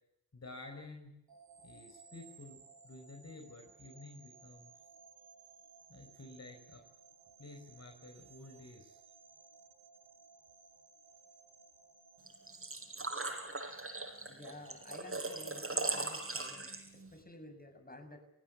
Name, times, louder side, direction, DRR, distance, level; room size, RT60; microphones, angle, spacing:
voice 1, 0.3-1.1 1.6-4.7 5.9-6.8 7.4-9.0, left 2 dB, 45° left, 3 dB, 5.3 m, -51 dB
sound 1, 1.3-13.4, right 5 dB, 80° right, 7.4 m, -60 dB
Engine / Trickle dribble / Fill (with liquid), 12.3-17.1, right 3 dB, 35° right, 7.1 m, -39 dB
voice 2, 14.3-18.2, left 1 dB, 25° left, 7 dB, 7.2 m, -52 dB
28.0 x 19.0 x 8.4 m, 0.80 s
cardioid pair, 70°, 36 cm